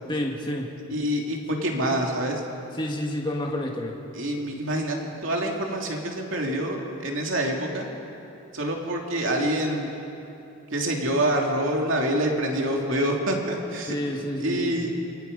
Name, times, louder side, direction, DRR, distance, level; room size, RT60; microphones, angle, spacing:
voice 1, 0.1-0.7 2.8-4.0 13.9-15.0, left 1 dB, 20° left, -1 dB, 2.0 m, -29 dB
voice 2, 0.9-2.4 4.1-7.9 8.5-9.9 10.7-13.9 14.4-14.9, right 1 dB, 60° right, 0 dB, 3.0 m, -26 dB
28.5 x 24.5 x 5.5 m, 2.8 s
head